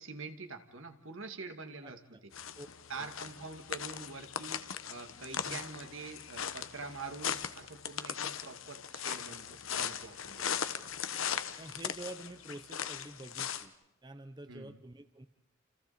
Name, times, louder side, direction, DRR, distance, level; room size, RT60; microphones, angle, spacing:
voice 1, 0.0-2.3 2.9-4.6 4.9-10.6 14.5-14.8, right 4 dB, 75° right, 7 dB, 2.3 m, -45 dB
voice 2, 1.8-2.2 2.6-2.7 3.0-3.3 5.4-5.6 11.6-13.7 14.0-15.3, right 1 dB, 20° right, 9 dB, 0.9 m, -48 dB
sound 1, 2.3-13.6, left 8 dB, 80° left, 1.2 m, -39 dB
29.5 x 28.5 x 4.3 m, 0.87 s
head